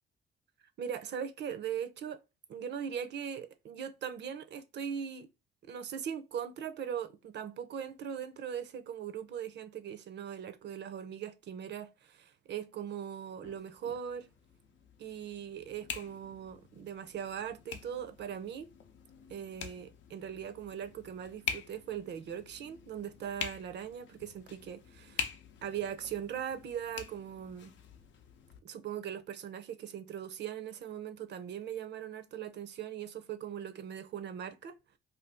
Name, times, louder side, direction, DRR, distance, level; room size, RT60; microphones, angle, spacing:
voice 1, 0.8-2.2 2.5-5.3 5.7-14.3 15.0-18.7 19.3-25.3 25.6-27.7 28.6-34.8, right 8 dB, 60° right, 0.5 m, -40 dB
sound 1, 13.4-28.6, left 7 dB, 70° left, 0.6 m, -45 dB
2.6 x 2.3 x 3.6 m
cardioid pair, 90°, 20 cm